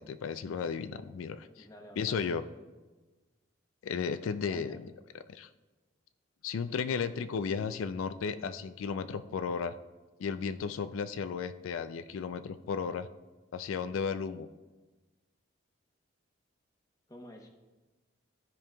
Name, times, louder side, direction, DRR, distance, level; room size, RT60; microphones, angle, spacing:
voice 1, 0.0-1.7 2.0-2.4 3.8-4.9 5.3-5.5 6.4-9.7 10.2-13.1 13.5-14.5, left 6 dB, 90° left, 11 dB, 0.4 m, -34 dB
voice 2, 1.6-2.3 4.5-4.8 17.1-17.5, equal, 15° left, 2 dB, 0.9 m, -50 dB
14.5 x 5.2 x 2.3 m, 1.2 s
head